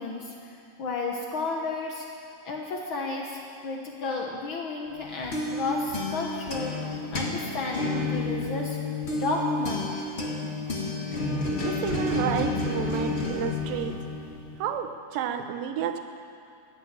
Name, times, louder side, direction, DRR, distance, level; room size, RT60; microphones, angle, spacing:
voice 1, 0.0-2.1 2.4-8.8 9.1-9.9, left 3 dB, 85° left, 0 dB, 1.1 m, -32 dB
sound 1, 5.0-14.6, left 2 dB, 55° left, 0.7 m, -30 dB
voice 2, 11.6-14.0 14.6-16.0, right 8 dB, 80° right, 7 dB, 2.6 m, -31 dB
14.5 x 9.5 x 8.8 m, 2.6 s
omnidirectional pair, 4.0 m